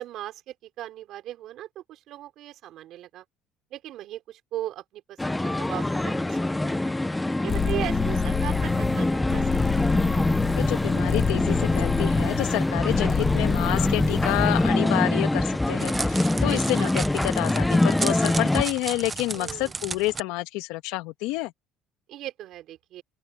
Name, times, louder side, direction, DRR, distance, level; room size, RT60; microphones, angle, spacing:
voice 1, 0.0-3.2 3.7-6.9 7.4-10.3 16.5-16.9 19.3-19.7 22.1-23.0, right 13 dB, 60° right, 3.8 m, -38 dB
sound 1, 5.2-18.6, left 2 dB, 10° left, 0.6 m, -24 dB
sound 2, 7.5-14.8, left 8 dB, 35° left, 1.5 m, -29 dB
voice 2, 10.6-21.5, left 19 dB, 90° left, 2.2 m, -29 dB
Crackle, 15.2-20.2, right 4 dB, 20° right, 0.8 m, -34 dB
open air
cardioid pair, 135°, 0 cm